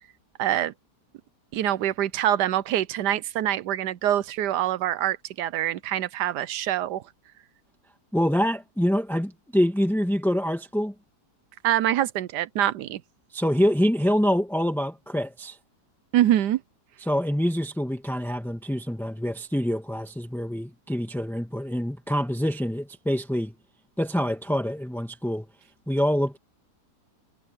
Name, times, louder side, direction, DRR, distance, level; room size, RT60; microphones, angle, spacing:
voice 1, 0.4-0.7 1.5-7.0 11.6-13.0 16.1-16.6, right 12 dB, 80° right, 1.3 m, -25 dB
voice 2, 8.1-10.9 13.3-15.6 17.0-23.5 24.0-25.5 25.9-26.4, equal, ahead, 1.8 m, -25 dB
omnidirectional pair, 1.8 m